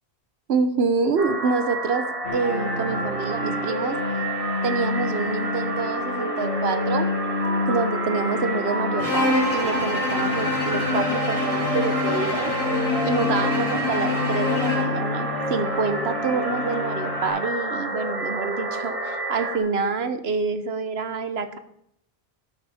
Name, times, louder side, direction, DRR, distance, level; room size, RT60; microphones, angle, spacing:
voice 1, 0.5-4.0 4.6-7.1 7.7-12.5 13.0-21.6, right 4 dB, 75° right, 10 dB, 1.2 m, -27 dB
sound 1, 1.2-19.6, right 2 dB, 35° right, 1.4 m, -29 dB
sound 2, 2.2-17.3, left 3 dB, 60° left, 2.2 m, -30 dB
Bowed string instrument, 9.0-15.0, left 3 dB, 40° left, 3.6 m, -26 dB
13.0 x 8.6 x 4.3 m, 0.76 s
omnidirectional pair, 1.1 m